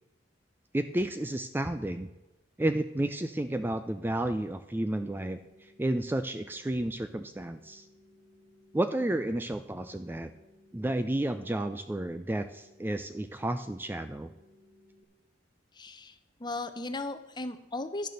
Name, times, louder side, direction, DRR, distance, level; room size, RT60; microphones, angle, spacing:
voice 1, 0.7-2.1 2.6-7.9 8.7-10.3 10.7-14.3, right 1 dB, 10° right, 9 dB, 0.4 m, -31 dB
sound 1, 5.0-15.0, left 1 dB, 25° right, 1.4 m, -60 dB
voice 2, 15.7-18.1, left 2 dB, 25° left, 10 dB, 0.7 m, -37 dB
11.0 x 6.6 x 6.5 m, 1.0 s
head